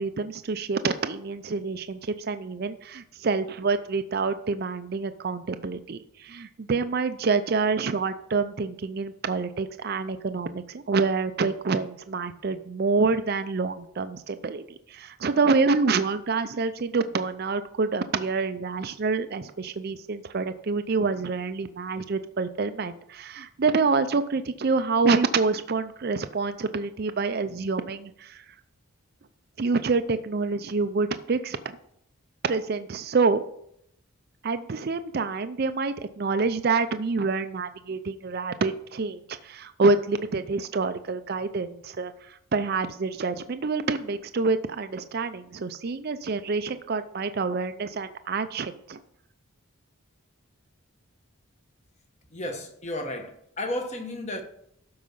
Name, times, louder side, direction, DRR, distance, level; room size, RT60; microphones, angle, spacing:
voice 1, 0.0-14.6 14.9-28.4 29.6-31.8 32.4-33.4 34.4-49.0, right 4 dB, 45° right, 0.4 m, -27 dB
voice 2, 52.3-54.4, left 1 dB, 30° left, 1.2 m, -33 dB
12.5 x 4.8 x 5.5 m
head